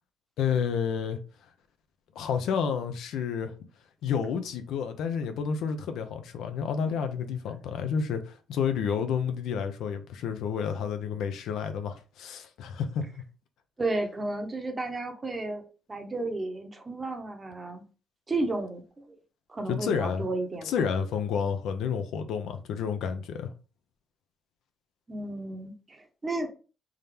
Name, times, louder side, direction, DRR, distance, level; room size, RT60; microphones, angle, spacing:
voice 1, 0.4-1.2 2.2-3.5 4.0-13.1 19.7-20.3 20.6-23.5, left 7 dB, 80° left, 0.5 m, -30 dB
voice 2, 13.8-17.8 18.3-19.2 19.5-20.7 25.1-26.5, right 2 dB, 25° right, 1.0 m, -33 dB
3.6 x 2.8 x 3.3 m
cardioid pair, 90°, 0 cm